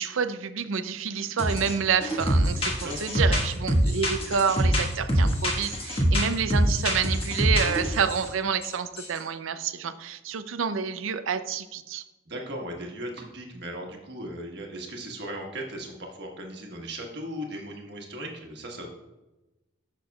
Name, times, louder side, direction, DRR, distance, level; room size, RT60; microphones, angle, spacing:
voice 1, 0.0-12.0, right 6 dB, 75° right, 11 dB, 0.5 m, -28 dB
sound 1, 1.4-1.7 2.0-8.3 8.6-9.2, equal, 30° left, 1.4 m, -24 dB
voice 2, 2.8-3.3 12.3-18.9, right 1 dB, 55° right, 1 dB, 1.4 m, -37 dB
11.5 x 6.1 x 2.3 m, 1.0 s
head